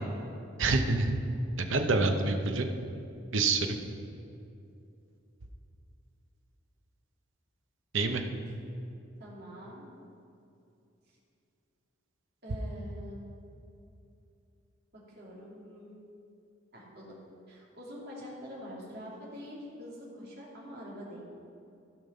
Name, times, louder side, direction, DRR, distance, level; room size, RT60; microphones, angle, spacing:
voice 1, 0.6-1.1 1.6-2.7 3.3-3.8 7.9-8.2, right 3 dB, 70° right, 5 dB, 0.8 m, -26 dB
voice 2, 9.2-9.8 12.4-13.2 14.9-16.0 16.7-17.2 17.5-21.3, equal, 50° right, -5 dB, 2.7 m, -45 dB
15.0 x 5.4 x 5.5 m, 2.7 s
head